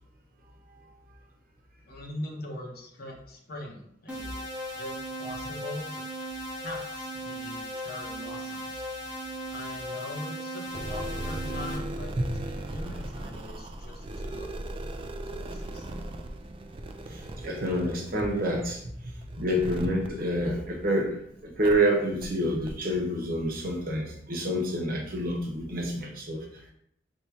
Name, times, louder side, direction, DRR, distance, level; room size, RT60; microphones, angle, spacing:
voice 1, 1.8-4.4 4.7-6.0 6.6-8.9 9.5-15.8, left 1 dB, 60° left, 0 dB, 0.9 m, -41 dB
sound 1, 4.1-11.8, equal, 10° right, 0.8 m, -37 dB
sound 2, 10.7-21.1 21.6-21.7 22.2-22.3 22.6-22.7, right 1 dB, 30° right, 0.3 m, -38 dB
voice 2, 17.1-26.4, equal, 55° right, 0 dB, 1.0 m, -28 dB
3.1 x 2.9 x 4.5 m, 0.72 s
head